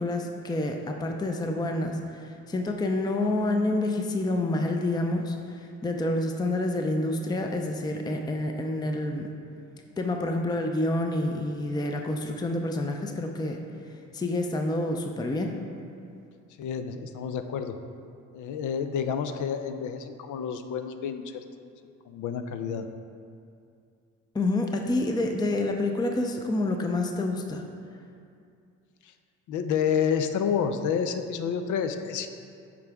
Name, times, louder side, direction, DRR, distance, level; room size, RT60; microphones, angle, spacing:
voice 1, 0.0-9.3 10.0-13.6 14.1-15.6 24.3-27.6, left 2 dB, 15° left, 3 dB, 0.5 m, -28 dB
voice 2, 16.6-17.8 18.3-21.4 22.1-22.9 29.5-32.3, left 7 dB, 80° left, 9 dB, 0.5 m, -29 dB
8.6 x 4.7 x 3.5 m, 2.4 s
cardioid pair, 90°, 30 cm